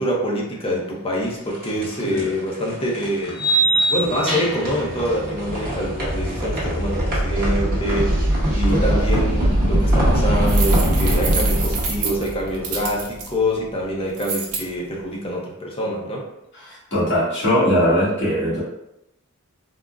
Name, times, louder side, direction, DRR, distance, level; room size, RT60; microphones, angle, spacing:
voice 1, 0.0-3.4 3.9-16.3, equal, 25° left, -2 dB, 0.6 m, -25 dB
sound 1, 1.2-13.3, right 1 dB, 45° right, 0.9 m, -22 dB
sound 2, 1.7-1.8 3.3-4.8, right 2 dB, ahead, 1.0 m, -21 dB
voice 2, 2.0-2.3 8.7-9.0 16.5-18.6, equal, 50° left, -8 dB, 1.3 m, -21 dB
sound 3, 10.4-13.3 14.2-14.6, right 5 dB, 85° right, 0.6 m, -28 dB
3.6 x 2.1 x 2.3 m, 0.85 s
head